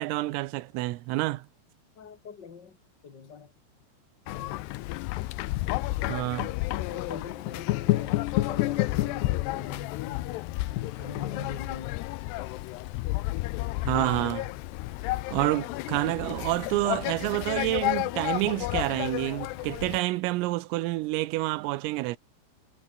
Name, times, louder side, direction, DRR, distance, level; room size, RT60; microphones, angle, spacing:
voice 1, 0.0-1.5 6.1-6.5 13.9-14.5 15.3-22.2, right 19 dB, 85° right, 3.6 m, -28 dB
voice 2, 1.9-2.8 3.0-3.5 4.3-4.6 6.7-10.3 10.7-12.0, left 6 dB, 55° left, 1.1 m, -42 dB
sound 1, 4.3-20.0, left 18 dB, 85° left, 2.4 m, -31 dB
omnidirectional pair, 5.9 m